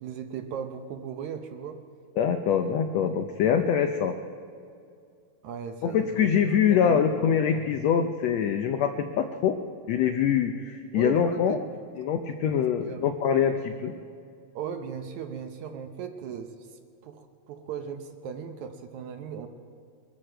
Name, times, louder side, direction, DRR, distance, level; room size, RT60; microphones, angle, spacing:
voice 1, 0.0-1.8 5.4-7.8 10.9-11.6 12.3-13.0 14.6-16.7 17.0-19.5, right 7 dB, 70° right, 6 dB, 1.9 m, -38 dB
voice 2, 2.2-4.2 5.8-9.6 9.9-11.6 12.0-13.9, left 8 dB, 85° left, 7 dB, 1.5 m, -24 dB
24.0 x 13.5 x 4.5 m, 2.4 s
omnidirectional pair, 3.9 m